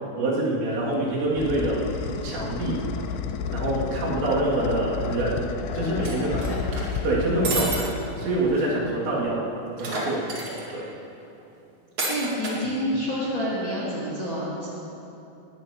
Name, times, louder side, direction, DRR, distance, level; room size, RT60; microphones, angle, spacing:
voice 1, 0.2-1.9 2.2-2.8 3.5-5.5 5.7-6.5 7.0-7.9 8.2-9.5 9.8-10.3 10.7-10.9, right 2 dB, 80° right, -7 dB, 4.9 m, -25 dB
sound 1, 0.8-8.7, left 6 dB, 90° left, 2.9 m, -32 dB
sound 2, 6.0-7.0 7.4-7.8 8.2-8.3 8.5-8.6 9.8-10.7 12.0-12.6, right 2 dB, 40° right, 2.0 m, -30 dB
voice 2, 12.0-14.7, equal, 40° left, -9 dB, 1.9 m, -28 dB
20.0 x 15.5 x 3.0 m, 2.9 s
omnidirectional pair, 5.0 m